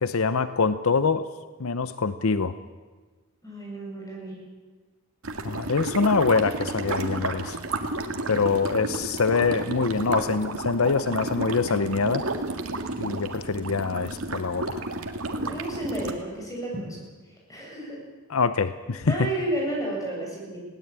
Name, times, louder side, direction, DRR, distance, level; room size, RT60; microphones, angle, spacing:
voice 1, 0.0-1.3 1.6-2.5 5.4-7.6 8.3-12.3 13.0-14.7 18.3-19.3, left 4 dB, 80° left, 13 dB, 0.8 m, -24 dB
voice 2, 3.4-4.4 15.3-17.0 17.5-18.0 19.1-20.6, right 1 dB, 15° left, -2 dB, 7.9 m, -31 dB
sound 1, 5.2-16.1, right 2 dB, 75° right, 2.1 m, -32 dB
20.0 x 17.5 x 8.9 m, 1.4 s
head